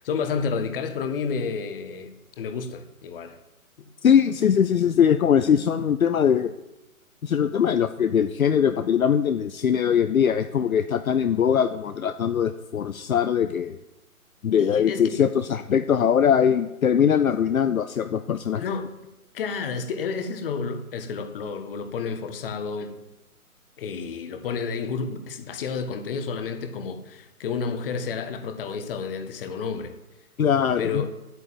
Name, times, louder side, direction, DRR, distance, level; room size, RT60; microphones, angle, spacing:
voice 1, 0.0-3.4 14.6-15.1 18.6-18.9 19.3-22.9 23.8-29.9 30.8-31.1, left 5 dB, 40° left, 1.8 m, -30 dB
voice 2, 4.0-6.5 7.2-13.8 14.4-18.6 30.4-31.0, left 8 dB, 65° left, 0.9 m, -21 dB
9.9 x 9.4 x 8.9 m
figure-of-eight pair, 140°, 45 cm